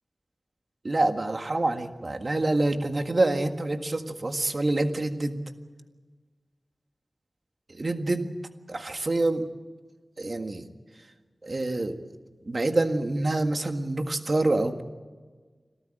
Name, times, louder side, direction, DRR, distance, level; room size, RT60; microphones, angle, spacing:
voice 1, 0.8-5.4 7.8-8.3 8.7-9.4 10.2-10.7 11.4-12.0 12.5-14.8, right 2 dB, 55° right, 6 dB, 1.7 m, -26 dB
26.0 x 14.0 x 9.2 m, 1.4 s
wide cardioid pair, 50°, 0 cm